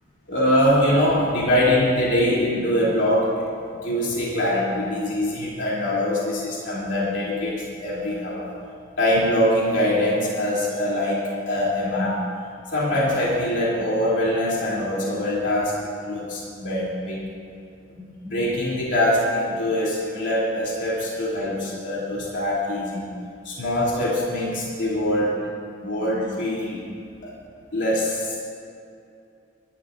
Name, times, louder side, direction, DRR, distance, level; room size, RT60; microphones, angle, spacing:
voice 1, 0.3-3.5 3.8-8.5 9.0-12.2 12.7-15.8 16.0-17.2 18.0-23.1 23.4-25.4 25.8-26.9 27.2-27.4 27.7-28.4, left 1 dB, 70° left, -6 dB, 3.1 m, -23 dB
29.0 x 11.5 x 2.6 m, 2.5 s
head